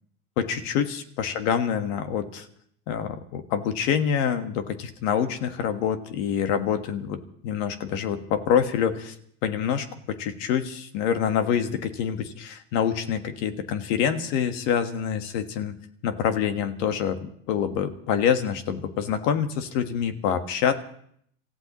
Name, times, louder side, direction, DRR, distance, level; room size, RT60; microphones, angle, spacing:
voice 1, 0.4-2.4 2.9-9.1 9.4-15.8 16.0-20.7, left 8 dB, 85° left, 8 dB, 1.6 m, -26 dB
27.0 x 15.0 x 3.1 m, 0.67 s
supercardioid pair, 85°, 36 cm